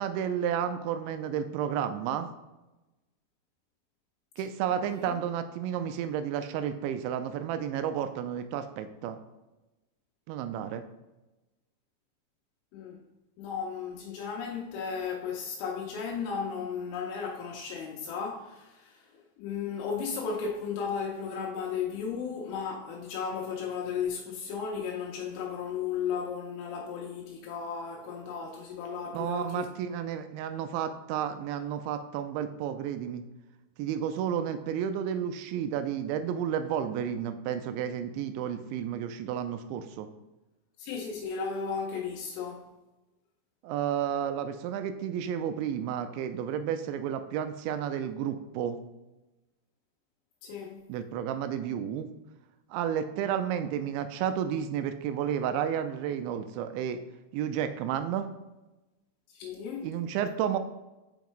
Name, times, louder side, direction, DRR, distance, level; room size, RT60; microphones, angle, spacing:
voice 1, 0.0-2.3 4.4-9.2 10.3-10.8 29.1-33.2 33.8-40.1 43.6-48.8 50.9-52.1 52.7-57.0 57.3-58.3 59.8-60.6, right 9 dB, 85° right, 2.7 m, -31 dB
voice 2, 12.7-13.0 13.4-19.0 19.4-29.7 40.8-42.7 50.4-50.8 59.3-59.9, left 6 dB, 85° left, 3.1 m, -35 dB
7.0 x 5.4 x 3.1 m
omnidirectional pair, 5.5 m